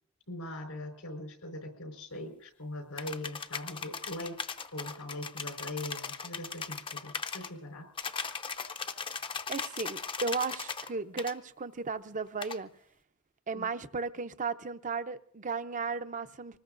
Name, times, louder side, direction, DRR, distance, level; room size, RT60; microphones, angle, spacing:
voice 1, 0.3-4.4 4.7-7.9 13.5-13.7, left 1 dB, 85° left, 4.5 m, -41 dB
sound 1, 3.0-7.5 8.0-10.9 11.2-11.3 12.4-12.6, left 5 dB, 25° left, 0.6 m, -38 dB
voice 2, 9.5-12.7 13.5-16.6, right 4 dB, 35° right, 0.6 m, -35 dB
25.0 x 19.5 x 2.6 m
head